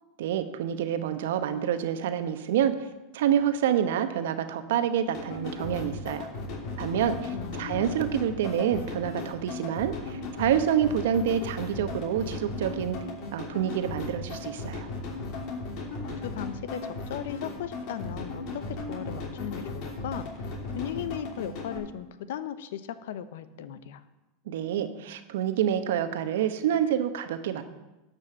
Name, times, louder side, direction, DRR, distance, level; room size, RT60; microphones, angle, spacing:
voice 1, 0.2-2.9 3.1-6.3 6.8-13.0 13.3-14.9 24.5-27.6, right 9 dB, 70° right, 9 dB, 1.0 m, -27 dB
sound 1, 5.1-21.8, left 2 dB, 55° left, 2.9 m, -36 dB
voice 2, 7.3-7.9 16.2-20.3 20.7-24.0, left 10 dB, 70° left, 14 dB, 0.7 m, -37 dB
12.0 x 5.4 x 7.4 m, 1.0 s
hypercardioid pair, 100°, 0 cm